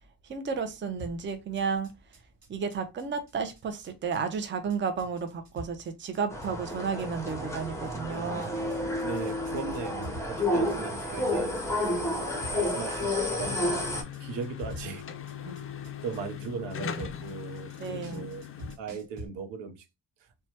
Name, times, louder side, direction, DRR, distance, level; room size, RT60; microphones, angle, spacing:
voice 1, 0.2-1.9 2.5-8.6 17.8-18.3, right 5 dB, 30° right, 0.5 m, -32 dB
sound 1, 1.0-19.3, equal, 55° right, 1.2 m, -47 dB
sound 2, 6.3-14.0, left 1 dB, 5° left, 0.7 m, -30 dB
voice 2, 8.1-12.1 12.5-15.0 15.4-15.6 16.0-18.4 18.8-19.9 20.2-20.3, right 6 dB, 90° right, 0.7 m, -39 dB
sound 3, 13.4-18.8, left 8 dB, 35° left, 0.4 m, -40 dB
3.0 x 2.2 x 2.7 m
cardioid pair, 115°, 42 cm